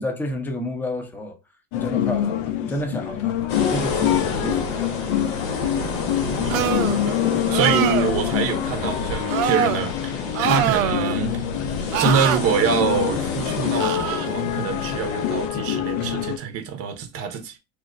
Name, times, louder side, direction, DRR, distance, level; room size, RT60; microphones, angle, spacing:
voice 1, 0.0-1.4 1.7-5.5, left 1 dB, 5° left, 0.6 m, -31 dB
sound 1, 1.7-16.4, left 11 dB, 65° left, 0.6 m, -26 dB
sound 2, 3.5-15.5, left 4 dB, 85° left, 1.4 m, -30 dB
voice 2, 6.4-7.2 7.5-11.4 12.0-17.6, right 7 dB, 35° right, 0.7 m, -25 dB
sound 3, 6.5-7.0 7.5-8.1 9.3-9.8 10.3-11.2 11.9-12.4 13.8-14.3, right 10 dB, 85° right, 0.5 m, -24 dB
3.0 x 2.0 x 3.7 m
hypercardioid pair, 100°, 40 cm